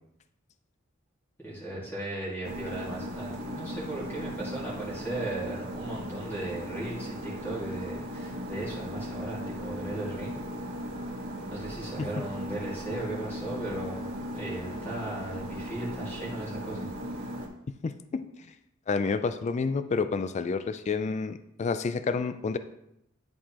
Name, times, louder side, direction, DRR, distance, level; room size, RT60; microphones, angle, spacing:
voice 1, 1.4-10.4 11.5-16.9, right 1 dB, 10° left, -7 dB, 1.9 m, -37 dB
sound 1, 2.4-17.5, equal, 75° right, 1.5 m, -37 dB
voice 2, 17.8-18.2 18.9-22.6, left 4 dB, 35° left, 11 dB, 0.3 m, -29 dB
10.5 x 4.7 x 2.9 m, 0.79 s
head